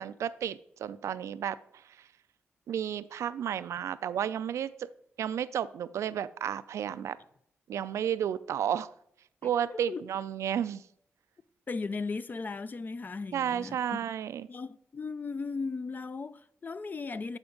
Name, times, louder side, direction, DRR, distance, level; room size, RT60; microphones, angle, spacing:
voice 1, 0.0-1.6 2.7-4.9 5.2-7.2 7.7-8.9 9.4-10.8 13.3-14.5, right 9 dB, 85° right, 0.4 m, -32 dB
voice 2, 9.4-10.0 11.7-14.1 14.5-17.4, left 4 dB, 40° left, 0.4 m, -37 dB
10.5 x 4.3 x 3.8 m
cardioid pair, 80°, 5 cm